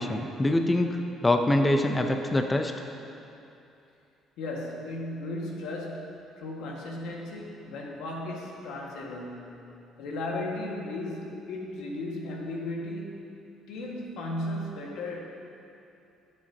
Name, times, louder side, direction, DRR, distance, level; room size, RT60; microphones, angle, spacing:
voice 1, 0.0-2.7, left 1 dB, 15° left, 5 dB, 0.6 m, -24 dB
voice 2, 4.4-9.6 10.0-13.2 13.7-15.2, left 1 dB, 85° left, -2 dB, 1.8 m, -35 dB
20.5 x 7.4 x 2.9 m, 2.8 s
cardioid pair, 115°, 0 cm